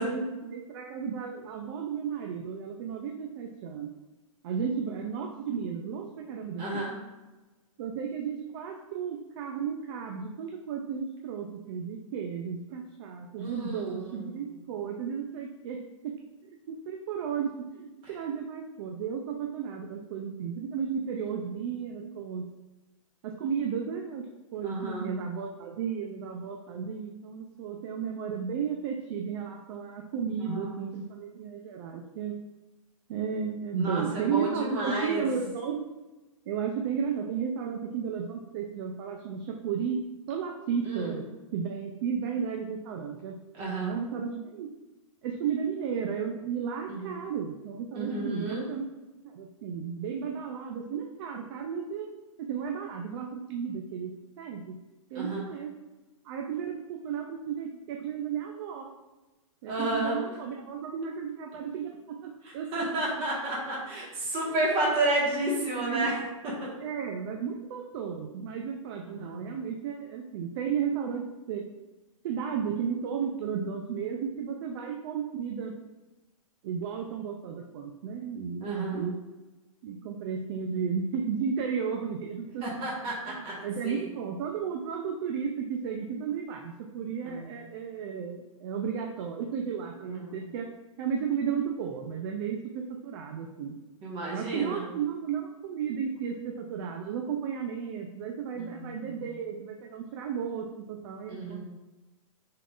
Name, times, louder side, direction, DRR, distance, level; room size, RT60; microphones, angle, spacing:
voice 1, 0.0-3.9 4.4-6.8 7.8-16.2 16.4-22.5 23.2-24.3 24.5-32.3 33.1-35.8 36.5-40.0 40.3-41.2 41.5-43.4 43.8-44.7 45.2-48.9 49.2-52.1 52.5-54.8 55.1-55.8 56.2-58.9 59.6-62.8 64.4-64.8 65.8-66.3 66.8-71.2 71.5-71.7 72.2-75.7 76.6-79.2 79.8-82.6 83.3-90.7 91.0-93.8 94.3-101.6, right 7 dB, 45° right, 2 dB, 0.4 m, -34 dB
voice 2, 6.6-6.9 13.4-14.2 24.6-25.1 30.4-30.8 33.8-35.2 40.9-41.1 43.5-43.9 46.9-47.1 47.9-48.6 55.1-55.4 59.7-60.2 62.7-66.1 69.1-69.4 78.6-79.1 82.6-83.1 83.4-83.5 83.8-84.0 87.2-87.5 90.0-90.4 94.0-94.8 98.5-99.2 101.3-101.6, right 2 dB, 30° right, -5 dB, 1.4 m, -31 dB
3.7 x 3.6 x 2.4 m, 1.1 s
hypercardioid pair, 135°, 18 cm